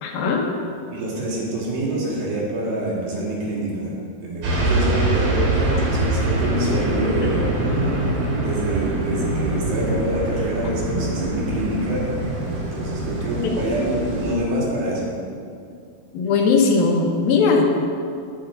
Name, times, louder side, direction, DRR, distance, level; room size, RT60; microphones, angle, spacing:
voice 1, 0.0-0.5 7.4-7.5 16.1-17.8, left 4 dB, 70° left, 1 dB, 2.7 m, -19 dB
voice 2, 0.9-3.9 4.2-7.5 8.4-12.1 12.5-15.1, right 1 dB, 80° right, -5 dB, 4.5 m, -26 dB
sound 1, 4.4-14.4, right 1 dB, 65° right, 3.8 m, -24 dB
18.5 x 7.8 x 3.9 m, 2.4 s
omnidirectional pair, 4.7 m